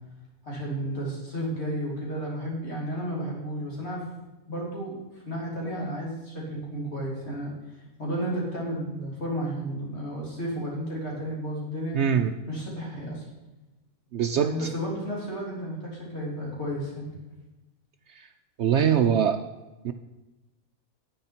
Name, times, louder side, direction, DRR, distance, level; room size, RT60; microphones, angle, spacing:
voice 1, 0.4-4.1 4.5-12.0 12.5-13.3 14.3-17.1, equal, 50° left, -4 dB, 3.6 m, -32 dB
voice 2, 11.9-12.3 14.1-14.7 18.2-18.3 18.6-19.4 19.8-19.9, right 8 dB, 65° right, 7 dB, 0.7 m, -23 dB
10.0 x 8.9 x 4.4 m, 1.1 s
omnidirectional pair, 1.5 m